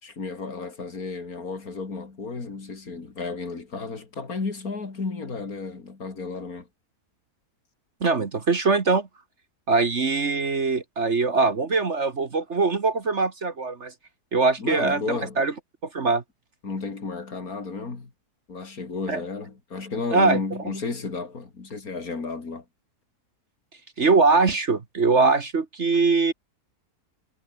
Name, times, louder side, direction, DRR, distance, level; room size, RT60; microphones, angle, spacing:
voice 1, 0.0-6.7 14.6-15.4 16.6-18.1 18.5-22.6, left 4 dB, 60° left, 3.6 m, -33 dB
voice 2, 8.0-9.1 9.7-13.9 14.3-15.5 15.9-16.2 19.1-19.2 20.1-20.4 24.0-26.3, right 4 dB, 45° right, 1.8 m, -22 dB
omnidirectional pair, 1.7 m